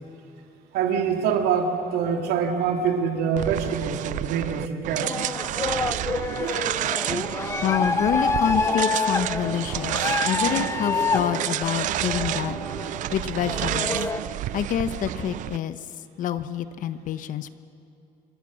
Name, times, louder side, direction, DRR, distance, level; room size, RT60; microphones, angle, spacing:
voice 1, 0.7-5.2, right 6 dB, 80° right, 4 dB, 2.7 m, -25 dB
sound 1, 3.4-15.6, right 14 dB, 50° right, 0.4 m, -30 dB
sound 2, 5.0-14.2, left 4 dB, 15° left, 0.8 m, -28 dB
voice 2, 7.6-12.6 13.1-14.1 14.5-15.8 16.2-17.5, left 10 dB, 55° left, 12 dB, 1.0 m, -27 dB
27.5 x 22.5 x 6.4 m, 2.9 s
cardioid pair, 140°, 16 cm